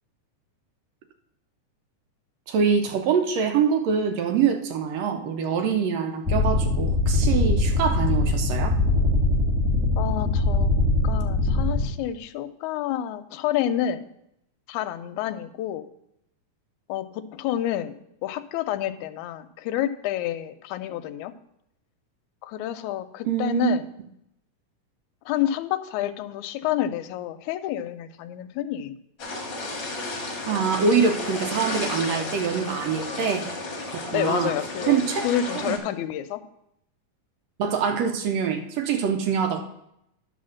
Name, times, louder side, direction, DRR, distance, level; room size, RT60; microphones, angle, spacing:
voice 1, 2.5-8.7 23.2-23.7 30.5-33.5 34.1-34.5 34.9-35.2 35.6-35.8 37.6-39.6, right 6 dB, 75° right, 4 dB, 1.6 m, -24 dB
sound 1, 6.3-11.8, left 2 dB, 5° right, 1.5 m, -22 dB
voice 2, 10.0-10.7 11.0-14.1 14.7-15.9 16.9-21.3 22.4-23.9 25.3-28.9 34.1-36.4, left 11 dB, 80° left, 10 dB, 1.9 m, -29 dB
sound 2, 29.2-35.8, left 2 dB, 50° left, 1.5 m, -33 dB
10.5 x 4.2 x 6.3 m, 0.80 s
omnidirectional pair, 3.6 m